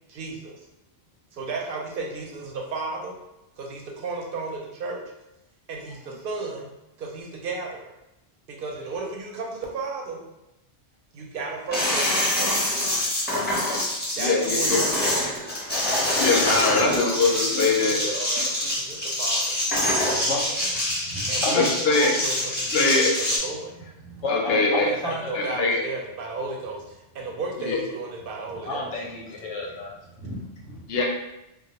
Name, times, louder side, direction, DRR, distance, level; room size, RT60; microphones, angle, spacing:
voice 1, 0.1-0.7 1.3-3.1 3.6-5.0 5.7-6.7 7.0-7.8 8.5-10.2 11.1-12.7 14.2-15.5 16.7-19.6 20.1-20.4 21.3-21.7 22.0-23.7 24.9-28.9, right 3 dB, 60° right, 0 dB, 0.6 m, -34 dB
sound 1, 11.7-23.4, left 1 dB, 10° left, 0.7 m, -25 dB
voice 2, 14.2-14.8 15.9-18.0 20.9-21.0 21.5-22.1 22.7-23.1 24.3-24.9 25.3-25.8 27.6-27.8 30.9-31.0, left 4 dB, 65° left, 0 dB, 0.8 m, -23 dB
voice 3, 19.8-21.9 23.8-25.4 28.6-30.9, left 2 dB, 90° left, -1 dB, 0.9 m, -32 dB
2.2 x 2.0 x 2.8 m, 0.91 s
omnidirectional pair, 1.2 m